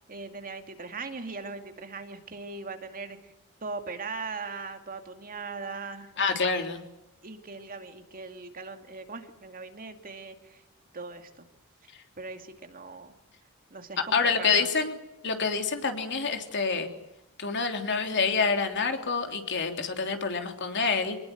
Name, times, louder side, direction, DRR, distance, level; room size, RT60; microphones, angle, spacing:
voice 1, 0.0-3.3 3.6-6.1 7.2-10.6 10.9-11.5 12.2-13.1 13.7-14.7, right 4 dB, 40° right, 6 dB, 2.4 m, -39 dB
voice 2, 6.2-6.8 14.1-14.9 15.2-16.9 17.4-21.2, left 5 dB, 55° left, 5 dB, 3.4 m, -27 dB
25.0 x 20.0 x 9.4 m, 0.86 s
head